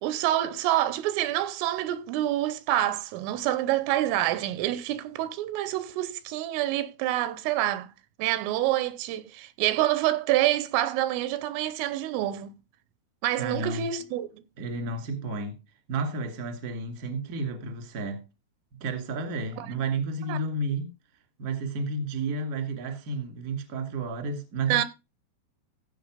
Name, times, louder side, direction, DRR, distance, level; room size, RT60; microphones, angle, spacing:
voice 1, 0.0-7.9 8.2-12.5 13.2-14.4 19.6-19.7 20.3-20.4 24.7-24.8, right 13 dB, 80° right, 3.3 m, -27 dB
voice 2, 13.4-13.9 14.6-15.6 15.9-18.2 18.8-20.9 21.4-24.8, right 3 dB, 35° right, 1.4 m, -31 dB
15.5 x 5.5 x 5.0 m
omnidirectional pair, 5.9 m